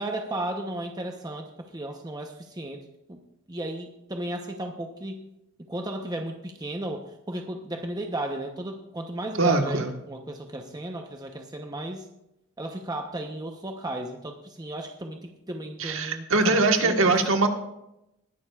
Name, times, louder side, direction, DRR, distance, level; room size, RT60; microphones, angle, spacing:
voice 1, 0.0-2.8 3.1-3.2 3.5-5.3 5.6-12.1 12.6-17.2, right 1 dB, 20° right, 3 dB, 0.8 m, -35 dB
voice 2, 9.4-9.9 15.8-17.5, right 3 dB, 60° right, 4 dB, 1.4 m, -22 dB
20.0 x 11.5 x 2.4 m, 0.86 s
head